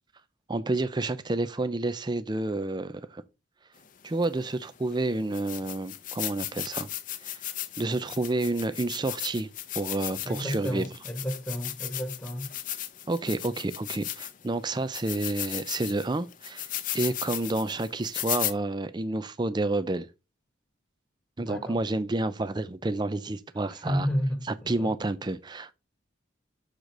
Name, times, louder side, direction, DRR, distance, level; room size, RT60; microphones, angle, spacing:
voice 1, 0.5-3.2 4.0-6.9 7.2-7.4 7.8-9.5 9.8-10.9 13.1-16.7 16.9-20.1 21.4-24.1 24.5-25.7, right 2 dB, 20° right, 0.4 m, -29 dB
sound 1, 4.2-4.3 4.9-5.0 5.3-14.5 14.9-18.5, left 13 dB, 40° left, 0.5 m, -36 dB
voice 2, 10.2-12.4 21.4-21.8 23.8-24.9, equal, 10° left, 1.1 m, -31 dB
6.6 x 3.8 x 4.7 m
head